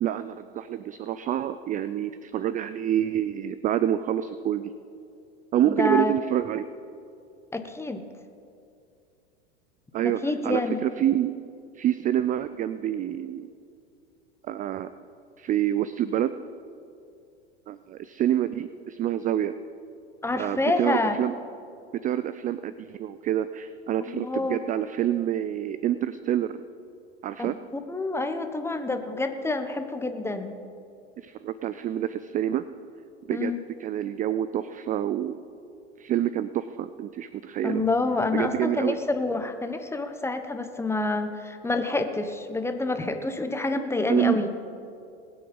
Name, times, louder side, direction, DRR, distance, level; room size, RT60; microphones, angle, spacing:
voice 1, 0.0-4.7 5.5-6.7 9.9-11.4 11.8-13.5 14.5-14.9 15.4-16.4 17.7-19.5 20.4-21.3 22.0-26.6 27.2-27.6 31.2-32.6 33.3-33.5 33.8-35.4 36.0-37.8 38.3-39.0 44.1-44.4, right 11 dB, 25° right, 13 dB, 0.4 m, -27 dB
voice 2, 5.6-6.1 7.5-8.0 10.0-10.8 20.2-21.2 24.0-24.6 27.4-30.6 33.3-33.6 37.6-44.5, left 2 dB, 10° left, 7 dB, 1.1 m, -28 dB
20.5 x 7.9 x 5.4 m, 2.5 s
hypercardioid pair, 100°, 34 cm